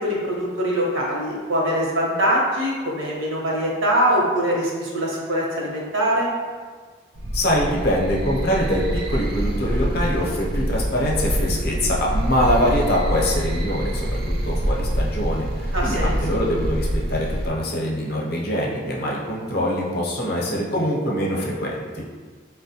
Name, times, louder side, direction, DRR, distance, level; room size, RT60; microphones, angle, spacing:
voice 1, 0.0-6.3 15.7-16.1, equal, 80° right, -3 dB, 0.8 m, -23 dB
sound 1, 7.1-17.5, equal, 50° right, 0.4 m, -25 dB
voice 2, 7.3-22.0, equal, 50° left, -3 dB, 0.6 m, -24 dB
4.2 x 2.1 x 2.7 m, 1.5 s
head